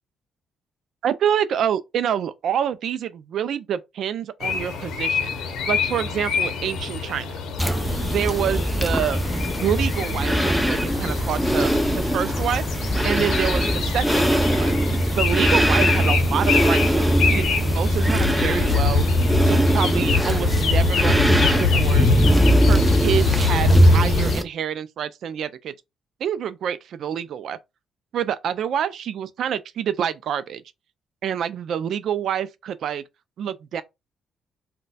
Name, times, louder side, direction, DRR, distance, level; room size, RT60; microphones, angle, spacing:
voice 1, 1.0-7.3 8.0-9.2 9.6-14.7 15.1-19.0 19.4-22.1 22.7-25.7 26.2-27.6 28.1-30.6 31.2-33.0 33.4-33.8, right 9 dB, 70° right, 0.3 m, -27 dB
sound 1, 4.4-24.4, left 5 dB, 80° left, 0.7 m, -25 dB
sound 2, 7.6-24.4, right 1 dB, 5° right, 0.5 m, -21 dB
4.0 x 2.2 x 2.2 m
cardioid pair, 90°, 0 cm